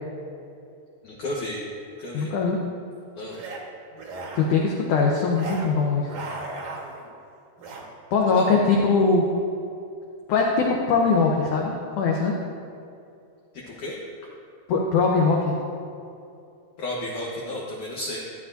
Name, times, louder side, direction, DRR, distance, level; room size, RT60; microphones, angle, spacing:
voice 1, 1.0-1.6 2.0-2.3 3.2-3.4 8.4-8.5 13.7-13.9 16.8-18.2, left 1 dB, 65° left, -4 dB, 2.1 m, -32 dB
voice 2, 2.1-2.6 4.3-6.1 8.1-9.2 10.3-12.3 14.7-15.5, left 4 dB, 85° left, -1 dB, 1.7 m, -21 dB
sound 1, 3.3-3.6 3.9-4.7 5.3-5.7 6.0-7.1 7.6-7.9, right 3 dB, 65° right, 2.2 m, -36 dB
14.0 x 11.0 x 2.6 m, 2.5 s
omnidirectional pair, 4.7 m